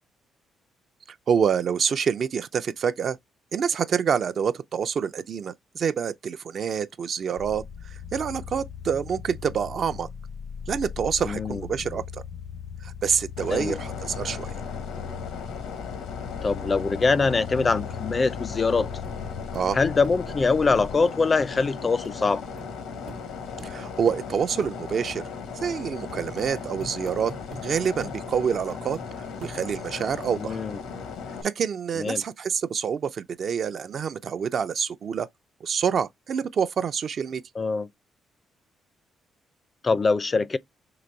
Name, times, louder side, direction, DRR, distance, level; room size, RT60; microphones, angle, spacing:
voice 1, 1.3-3.2 3.5-10.1 10.7-12.2 12.8-14.5 19.5-19.8 23.6-25.2 25.6-27.3 27.6-29.0 29.4-30.6 31.4-35.3 35.6-37.4, right 7 dB, 55° right, 0.4 m, -27 dB
sound 1, 7.4-21.0, left 7 dB, 65° left, 0.7 m, -38 dB
voice 2, 11.2-11.6 13.5-13.8 16.4-18.9 19.7-22.4 30.4-30.8 32.0-32.2 37.6-37.9 39.8-40.6, left 4 dB, 30° left, 0.4 m, -23 dB
sound 2, 13.4-31.4, left 5 dB, 85° left, 1.0 m, -37 dB
sound 3, 18.5-18.6 19.0-19.2 19.5-19.7 20.0-21.2 21.6-21.8 22.0-22.2 22.6-22.7 23.1-23.2 23.6-23.8 24.1-24.2 24.6-24.7 25.1-25.2 25.6-25.8 26.1-27.7 28.0-28.2 28.7-29.1 29.4-29.9 30.4-30.5, right 2 dB, 80° right, 1.0 m, -43 dB
3.9 x 3.0 x 4.4 m
cardioid pair, 90°, 0 cm